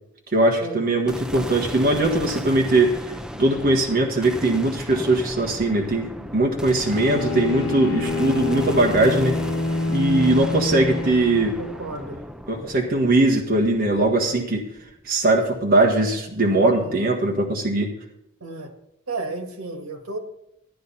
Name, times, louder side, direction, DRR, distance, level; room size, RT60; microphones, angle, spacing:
voice 1, 0.3-3.1 3.4-9.4 9.9-11.6 12.5-14.6 15.0-17.9, right 2 dB, 45° right, -1 dB, 1.5 m, -20 dB
sound 1, 1.1-15.4, equal, 5° right, 0.6 m, -36 dB
Bowed string instrument, 6.8-11.6, left 3 dB, 65° left, 1.1 m, -27 dB
voice 2, 11.6-12.2 16.8-17.0 18.4-18.7 19.1-20.2, right 3 dB, 85° right, 5 dB, 1.7 m, -33 dB
13.0 x 10.5 x 4.2 m, 0.80 s
head